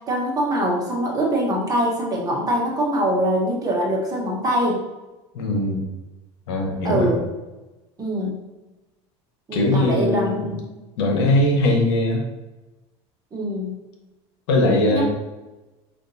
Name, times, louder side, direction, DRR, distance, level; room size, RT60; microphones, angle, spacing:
voice 1, 0.1-4.8 6.8-7.2 8.0-8.4 9.5-10.7 13.3-13.8 14.9-15.0, right 1 dB, 25° right, -2 dB, 1.1 m, -23 dB
voice 2, 5.3-5.9 6.5-7.1 9.5-10.5 11.0-12.2 14.5-15.0, left 1 dB, 85° left, 1 dB, 1.0 m, -20 dB
5.0 x 2.5 x 2.7 m, 1.1 s
supercardioid pair, 125°, 14 cm